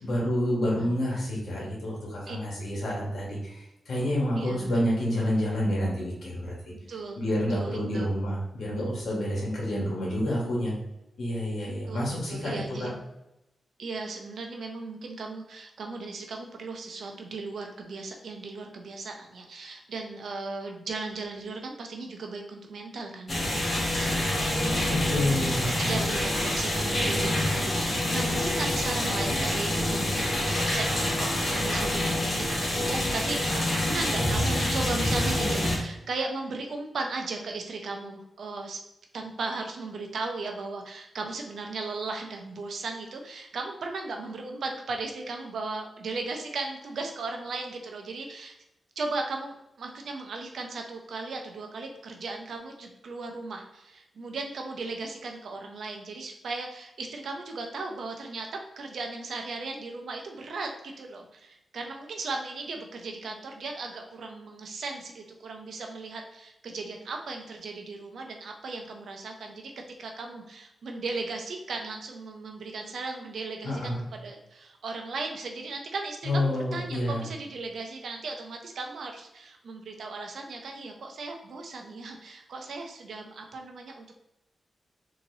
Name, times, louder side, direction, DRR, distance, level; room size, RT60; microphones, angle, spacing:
voice 1, 0.0-6.5 7.2-10.7 11.2-12.9 24.8-26.0 73.6-74.0 76.2-77.2, left 1 dB, 75° left, -3 dB, 1.5 m, -29 dB
voice 2, 4.3-4.7 6.7-7.2 7.5-8.1 11.7-12.9 13.8-23.5 24.0-38.8 39.1-48.5 49.0-58.5 58.8-69.7 70.0-84.1, right 3 dB, 75° right, 3 dB, 0.6 m, -37 dB
sound 1, 23.3-35.8, left 1 dB, 40° left, 1.1 m, -27 dB
4.0 x 2.9 x 2.7 m, 0.88 s
wide cardioid pair, 110°, 0 cm